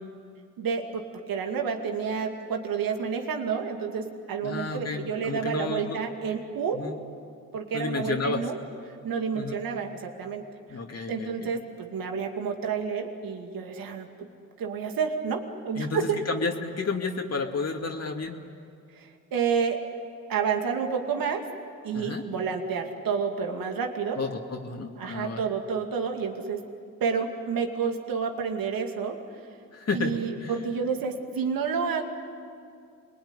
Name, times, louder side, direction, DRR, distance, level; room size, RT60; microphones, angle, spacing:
voice 1, 0.6-6.8 7.5-8.6 9.0-10.4 10.7-10.8 11.1-14.3 14.6-16.2 18.9-19.8 20.3-21.4 21.8-24.2 25.0-26.6 27.0-29.2 29.9-32.0, right 6 dB, 85° right, 3 dB, 2.5 m, -29 dB
voice 2, 4.4-6.0 6.7-7.0 7.7-8.5 9.4-9.6 10.7-11.5 15.8-18.4 21.9-22.2 24.2-25.4 29.7-30.5, left 4 dB, 45° left, 1 dB, 2.4 m, -31 dB
27.0 x 21.0 x 9.9 m, 2.3 s
cardioid pair, 65°, 34 cm